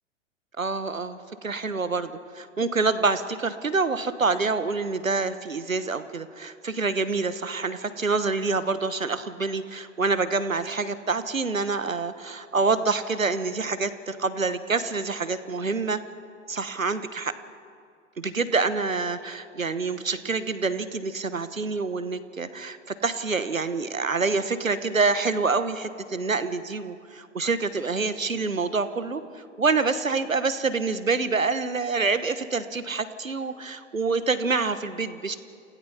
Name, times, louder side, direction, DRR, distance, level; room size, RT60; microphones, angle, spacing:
voice 1, 0.6-16.0 16.5-17.3 18.2-22.8 23.0-35.4, right 4 dB, 90° right, 12 dB, 1.2 m, -27 dB
28.5 x 16.5 x 5.6 m, 2.3 s
figure-of-eight pair, 110°, 39 cm